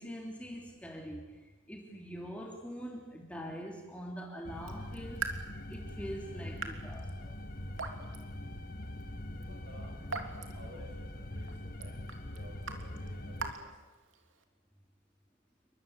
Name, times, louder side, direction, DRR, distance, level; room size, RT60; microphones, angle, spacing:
voice 1, 0.0-5.4 5.7-7.4, equal, 5° left, 0 dB, 3.3 m, -44 dB
sound 1, 4.4-13.5, left 1 dB, 45° left, 1.9 m, -43 dB
Raindrop / Drip, 4.5-14.4, right 4 dB, 70° right, 3.2 m, -45 dB
voice 2, 9.4-13.8, equal, 55° right, 2 dB, 7.9 m, -54 dB
29.0 x 24.0 x 8.2 m, 1.2 s
head